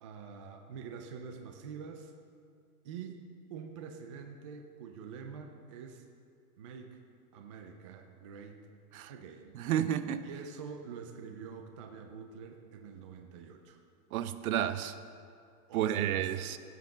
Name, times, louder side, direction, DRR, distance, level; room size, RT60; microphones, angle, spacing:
voice 1, 0.0-2.1 2.8-3.2 3.5-6.0 6.6-7.0 7.3-8.6 9.1-9.6 10.2-13.8 15.7-16.3, right 6 dB, 25° right, 5 dB, 0.3 m, -46 dB
voice 2, 9.5-10.2 14.1-15.0 15.7-16.6, right 10 dB, 65° right, 12 dB, 0.7 m, -31 dB
16.0 x 7.6 x 3.9 m, 2.3 s
hypercardioid pair, 140°, 47 cm